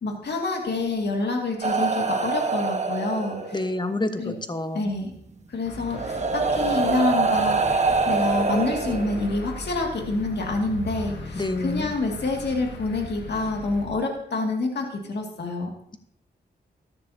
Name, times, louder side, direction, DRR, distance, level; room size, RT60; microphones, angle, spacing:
voice 1, 0.0-3.7 4.2-4.3 4.7-5.1 5.5-15.7, left 3 dB, 70° left, 2 dB, 2.3 m, -27 dB
sound 1, 1.6-3.8 5.1-5.2 5.9-9.5 10.6-10.8, right 4 dB, 40° right, 1.3 m, -25 dB
voice 2, 3.5-4.8 11.3-11.9, left 2 dB, 25° left, 9 dB, 1.1 m, -28 dB
sound 2, 5.6-13.9, left 1 dB, 90° left, 2.0 m, -39 dB
13.5 x 10.5 x 2.8 m, 0.73 s
cardioid pair, 65°, 18 cm